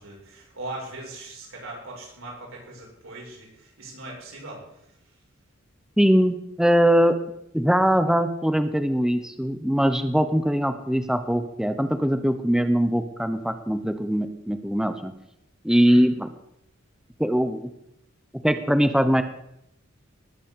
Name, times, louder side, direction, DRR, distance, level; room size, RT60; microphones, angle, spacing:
voice 1, 0.0-4.6 15.7-16.0, right 2 dB, 85° right, -2 dB, 7.1 m, -40 dB
voice 2, 6.0-7.2 7.5-15.1 15.6-16.3 17.2-17.6 18.4-19.2, equal, 5° right, 9 dB, 0.8 m, -21 dB
19.5 x 8.4 x 6.8 m, 0.80 s
head